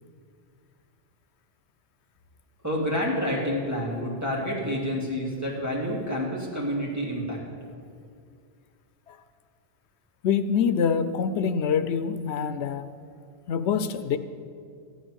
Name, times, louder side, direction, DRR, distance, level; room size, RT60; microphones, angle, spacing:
voice 1, 2.6-7.4, equal, 15° right, -4 dB, 2.9 m, -28 dB
voice 2, 10.2-12.9 13.5-14.2, left 7 dB, 85° left, 12 dB, 0.9 m, -25 dB
14.0 x 10.5 x 6.3 m, 2.2 s
omnidirectional pair, 1.1 m